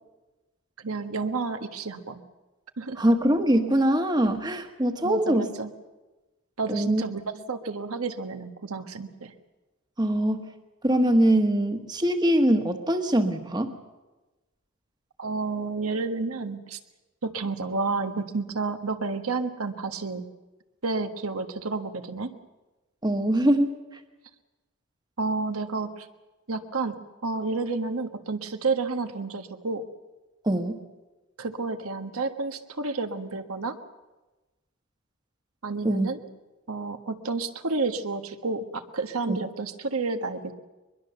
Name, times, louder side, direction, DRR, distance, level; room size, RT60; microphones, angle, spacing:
voice 1, 0.8-2.2 2.8-3.0 5.0-5.7 6.6-9.3 15.2-16.8 17.2-20.3 20.8-22.3 25.2-26.1 26.5-27.0 27.2-29.8 31.4-33.7 35.6-36.2 36.7-40.5, right 3 dB, 90° right, 7 dB, 1.4 m, -30 dB
voice 2, 3.0-5.5 6.7-7.0 10.0-10.5 10.8-13.7 23.0-23.7 30.4-30.8 35.8-36.1 39.3-39.4, right 1 dB, 20° right, 6 dB, 1.3 m, -23 dB
22.5 x 22.0 x 6.9 m, 1.1 s
head